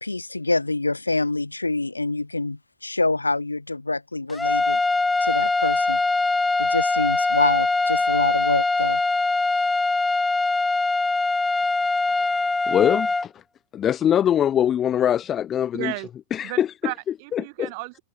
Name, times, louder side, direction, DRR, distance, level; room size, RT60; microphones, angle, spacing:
voice 1, 0.0-4.8 5.2-6.0 6.6-9.0, left 2 dB, 85° left, 1.7 m, -26 dB
sound 1, 4.3-13.3, left 3 dB, 10° left, 1.3 m, -22 dB
voice 2, 12.1-12.4 12.7-13.4 13.7-15.9 16.3-16.7 17.3-17.7, left 10 dB, 25° left, 0.6 m, -22 dB
voice 3, 15.7-16.1 16.4-18.0, right 28 dB, 45° right, 1.7 m, -34 dB
figure-of-eight pair, 90°, 0 cm